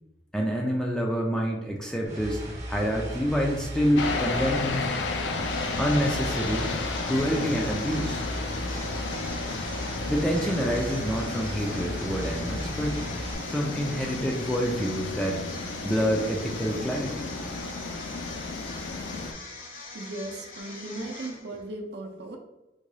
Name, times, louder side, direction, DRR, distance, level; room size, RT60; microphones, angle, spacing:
voice 1, 0.3-4.9 5.8-6.7 7.0-8.3 10.1-13.0 13.5-17.3, equal, 5° left, -1 dB, 0.3 m, -27 dB
sound 1, 2.1-13.3, equal, 40° right, 0.9 m, -36 dB
sound 2, 4.0-19.3, left 3 dB, 80° left, 0.4 m, -33 dB
sound 3, 5.3-21.7, left 3 dB, 45° left, 0.7 m, -43 dB
voice 2, 19.9-22.4, right 2 dB, 65° right, 2 dB, 0.5 m, -37 dB
3.7 x 2.2 x 3.1 m, 1.0 s
head